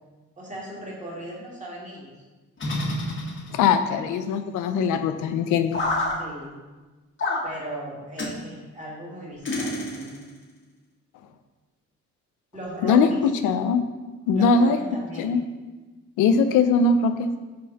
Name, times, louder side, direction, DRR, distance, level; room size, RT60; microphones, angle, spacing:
voice 1, 0.4-2.1 6.2-6.5 7.4-10.2 12.5-13.2 14.3-15.3, right 1 dB, 25° right, -4 dB, 2.2 m, -37 dB
sound 1, 2.6-3.8 5.7-6.2 7.2-7.5 8.2-8.4 9.4-10.3, left 2 dB, 40° left, 1.4 m, -28 dB
voice 2, 3.5-5.8 12.8-13.1 13.4-13.8 14.3-14.8 15.2-15.4 16.2-17.3, left 5 dB, 90° left, 9 dB, 0.6 m, -21 dB
5.6 x 3.9 x 5.2 m, 1.2 s
cardioid pair, 90°, 30 cm